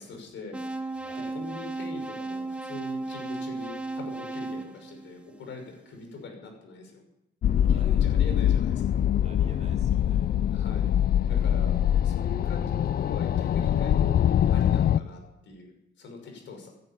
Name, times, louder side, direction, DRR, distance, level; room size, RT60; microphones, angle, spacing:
voice 1, 0.0-0.9 1.3-7.0 7.7-9.0 10.5-11.0 11.3-11.8 12.0-14.2 14.5-16.7, left 3 dB, 70° left, 4 dB, 5.8 m, -42 dB
sound 1, 0.5-5.7, right 2 dB, 5° right, 1.3 m, -35 dB
voice 2, 0.9-1.4 7.6-8.1 9.2-10.3 11.9-12.0, right 4 dB, 35° right, 2 dB, 3.1 m, -50 dB
sound 2, 7.4-15.0, left 10 dB, 50° left, 0.5 m, -23 dB
15.0 x 10.5 x 8.8 m, 0.85 s
cardioid pair, 90°, 20 cm